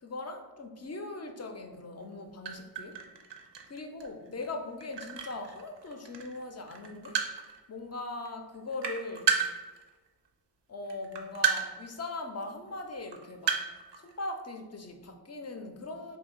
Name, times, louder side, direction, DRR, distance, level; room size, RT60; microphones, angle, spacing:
voice 1, 0.0-3.0 3.7-7.2 7.7-9.4 10.7-13.6 14.0-16.2, left 2 dB, 40° left, 5 dB, 0.4 m, -40 dB
sound 1, 2.1-2.2 2.4-6.4 6.7-7.6 8.2-8.3 8.5-10.3 10.9-11.9 12.2-12.3 12.9-14.1, right 7 dB, 85° right, 0.5 m, -32 dB
2.7 x 2.7 x 4.3 m, 1.2 s
wide cardioid pair, 55°, 41 cm